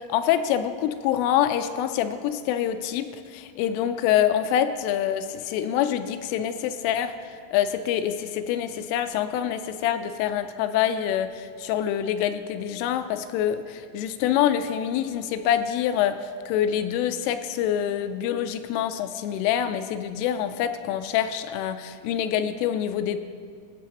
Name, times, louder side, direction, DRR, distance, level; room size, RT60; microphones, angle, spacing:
voice 1, 0.1-7.1 7.5-23.2, left 10 dB, 85° left, 9 dB, 3.0 m, -26 dB
21.0 x 7.9 x 2.9 m, 2.1 s
omnidirectional pair, 5.7 m